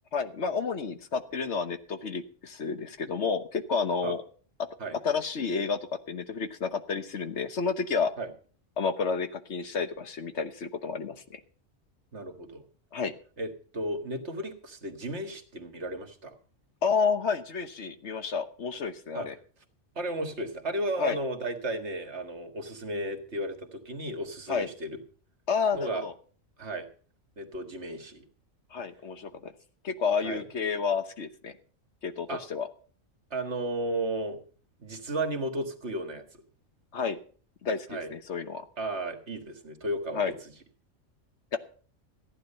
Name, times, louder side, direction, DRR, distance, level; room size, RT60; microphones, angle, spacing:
voice 1, 0.1-4.2 5.0-5.8 6.1-8.1 8.8-11.4 12.9-13.1 16.8-19.3 21.0-21.2 24.5-24.7 25.5-26.1 28.7-29.5 29.8-31.5 32.0-32.7 36.9-37.2 37.6-38.6 40.1-40.3 41.5-41.6, left 5 dB, 65° left, 9 dB, 1.3 m, -30 dB
voice 2, 12.1-12.6 13.4-16.4 19.1-19.3 20.0-25.0 25.7-26.1 26.6-26.9 27.4-28.3 30.2-30.4 32.3-32.4 33.3-34.4 34.8-36.2 37.9-38.1 38.8-40.3, right 1 dB, 60° right, 6 dB, 2.0 m, -34 dB
15.0 x 9.7 x 5.5 m, 0.43 s
omnidirectional pair, 1.3 m